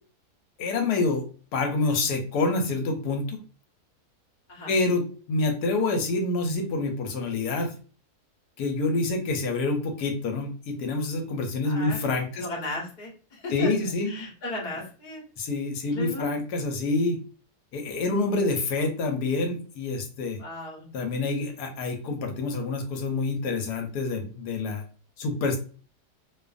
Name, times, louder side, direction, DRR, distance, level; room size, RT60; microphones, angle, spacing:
voice 1, 0.6-1.2 1.5-3.4 4.7-7.7 8.6-12.5 13.5-14.1 15.4-17.2 17.7-20.4 20.9-24.8 25.2-25.6, left 3 dB, 80° left, 4 dB, 1.2 m, -27 dB
voice 2, 11.6-12.0 12.3-13.7 14.1-15.2 15.8-16.3 20.4-20.9, left 2 dB, 35° left, -2 dB, 0.9 m, -36 dB
2.5 x 2.3 x 2.3 m, 0.37 s
omnidirectional pair, 1.7 m